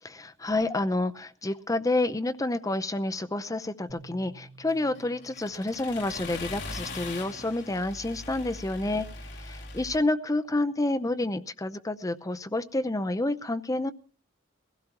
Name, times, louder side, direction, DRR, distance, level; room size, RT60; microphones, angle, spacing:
voice 1, 0.0-13.9, left 2 dB, 20° left, 8 dB, 0.7 m, -29 dB
sound 1, 3.9-7.2, right 2 dB, 45° right, 2.0 m, -53 dB
Accelerating revving vroom, 4.7-10.0, left 3 dB, 65° left, 2.4 m, -41 dB
22.0 x 16.0 x 3.0 m, 0.38 s
head